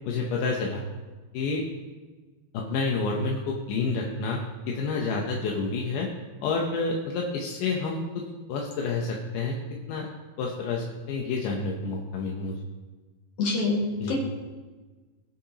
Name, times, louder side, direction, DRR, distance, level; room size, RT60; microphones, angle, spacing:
voice 1, 0.1-0.8 1.3-1.6 2.5-6.1 6.4-8.2 8.5-9.6 9.9-10.1 10.4-12.6 14.0-14.2, left 4 dB, 70° left, -1 dB, 2.2 m, -29 dB
voice 2, 13.4-14.2, left 3 dB, 50° left, -3 dB, 3.0 m, -26 dB
20.5 x 6.9 x 2.9 m, 1.3 s
omnidirectional pair, 4.6 m